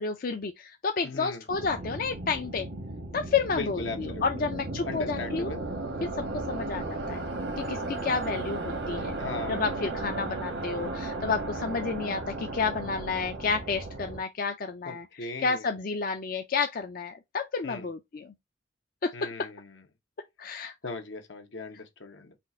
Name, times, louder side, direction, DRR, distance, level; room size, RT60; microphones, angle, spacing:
voice 1, 0.0-2.7 3.1-5.5 6.0-7.3 7.6-9.1 9.5-15.0 15.4-18.3 19.0-19.5 20.4-20.7, left 5 dB, 50° left, 0.5 m, -31 dB
voice 2, 1.0-1.4 3.5-4.2 4.8-5.6 9.2-9.7 14.8-15.7 17.6-17.9 19.1-19.8 20.8-22.3, left 3 dB, 80° left, 1.0 m, -38 dB
sound 1, 1.5-14.2, right 2 dB, 85° right, 1.3 m, -35 dB
4.2 x 2.5 x 4.2 m
head